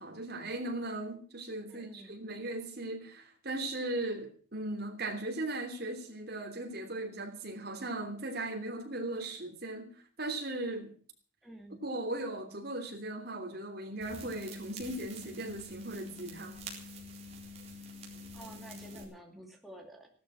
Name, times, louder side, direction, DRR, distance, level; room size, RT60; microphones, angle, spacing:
voice 1, 0.0-9.9 10.2-10.9 11.8-16.6, right 2 dB, 50° right, 3.2 m, -38 dB
voice 2, 1.7-2.1 11.4-11.9 18.3-20.1, right 1 dB, ahead, 2.6 m, -50 dB
sound 1, 14.0-19.0, equal, 30° right, 4.1 m, -46 dB
16.0 x 12.5 x 6.2 m
head